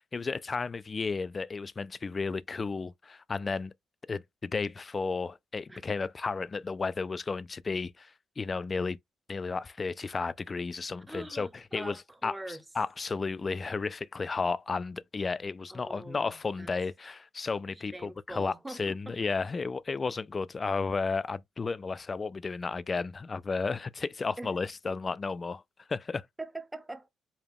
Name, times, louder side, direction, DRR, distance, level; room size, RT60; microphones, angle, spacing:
voice 1, 0.0-3.7 4.1-9.0 9.3-25.6 25.9-26.3, left 4 dB, 30° left, 0.3 m, -33 dB
voice 2, 11.1-12.6 15.7-16.7 17.9-19.1 24.4-24.6 26.4-27.1, right 2 dB, 10° right, 0.8 m, -43 dB
4.9 x 2.2 x 3.4 m
cardioid pair, 90°, 0 cm